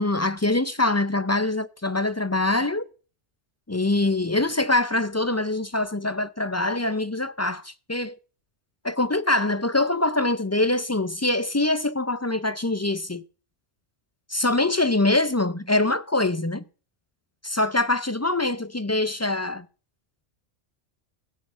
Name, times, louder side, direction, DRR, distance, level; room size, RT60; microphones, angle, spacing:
voice 1, 0.0-2.8 3.7-8.2 8.8-13.2 14.3-16.6 17.4-19.7, left 2 dB, 25° left, 0.3 m, -24 dB
16.0 x 7.6 x 6.7 m
omnidirectional pair, 1.2 m